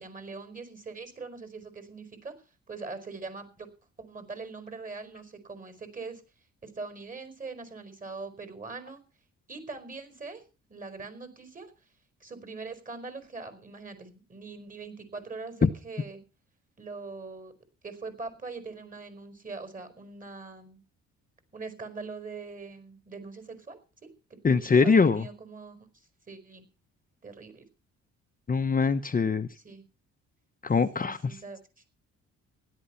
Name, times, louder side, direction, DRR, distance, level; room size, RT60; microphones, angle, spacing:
voice 1, 0.0-2.3 2.7-3.7 4.0-6.2 6.6-9.0 9.5-10.4 10.7-11.7 12.2-16.2 16.8-17.5 17.8-20.8 21.5-24.1 24.6-26.6 27.2-27.6 29.6-29.8 30.9-31.8, right 4 dB, 25° right, 10 dB, 5.0 m, -42 dB
voice 2, 24.4-25.3 28.5-29.5 30.6-31.4, left 5 dB, 30° left, 8 dB, 1.0 m, -23 dB
16.0 x 11.5 x 5.7 m, 0.34 s
cardioid pair, 90°, 30 cm